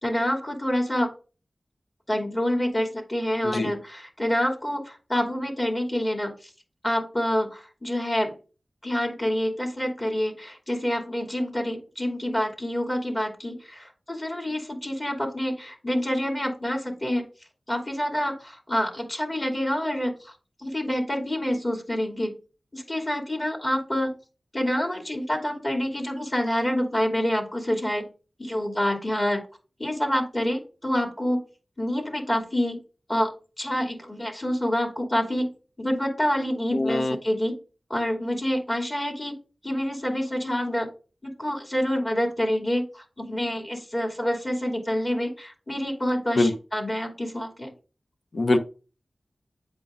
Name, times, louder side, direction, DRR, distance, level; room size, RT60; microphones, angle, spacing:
voice 1, 0.0-1.1 2.1-6.3 6.8-8.3 8.8-17.3 17.7-20.3 20.6-22.3 22.7-24.1 24.5-28.0 28.4-29.4 29.8-31.4 31.8-32.8 33.1-35.5 35.8-37.6 37.9-39.3 39.6-40.9 41.2-47.7, equal, 30° left, 2 dB, 2.5 m, -27 dB
voice 2, 36.7-37.2 46.3-46.5 48.3-48.6, left 2 dB, 65° left, 7 dB, 0.9 m, -22 dB
8.2 x 5.3 x 2.5 m, 0.33 s
wide cardioid pair, 50°, 0 cm